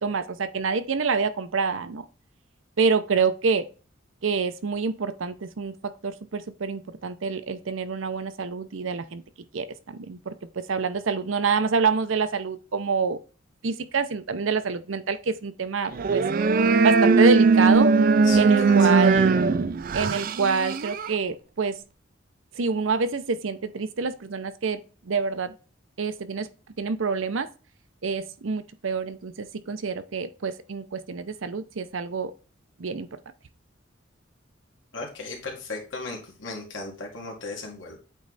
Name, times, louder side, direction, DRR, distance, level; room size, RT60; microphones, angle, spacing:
voice 1, 0.0-2.0 2.8-3.7 4.2-9.2 9.5-10.3 10.7-13.2 13.6-16.2 16.8-17.9 18.3-19.4 19.9-21.8 22.6-24.8 25.1-25.5 26.0-26.5 26.8-27.5 28.0-32.3 32.8-33.1, right 5 dB, 80° right, 11 dB, 0.6 m, -26 dB
sound 1, 15.9-21.2, right 4 dB, 45° right, 0.4 m, -19 dB
voice 2, 18.2-19.1 34.9-38.0, left 3 dB, 70° left, 0 dB, 2.1 m, -36 dB
8.2 x 3.2 x 4.0 m, 0.35 s
head